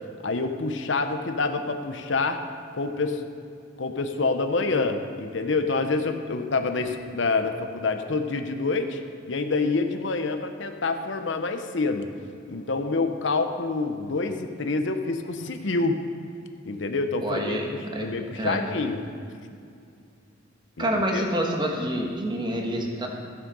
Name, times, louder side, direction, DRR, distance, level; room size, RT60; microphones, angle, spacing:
voice 1, 0.2-2.4 2.7-3.2 3.8-9.0 9.3-12.1 12.5-16.0 16.6-17.6 18.0-19.0 20.8-20.9 21.1-21.2, left 3 dB, 65° left, 6 dB, 0.8 m, -27 dB
voice 2, 17.2-18.1 18.4-18.6 20.8-23.1, equal, 20° right, 1 dB, 1.2 m, -27 dB
13.5 x 7.5 x 5.4 m, 2.4 s
head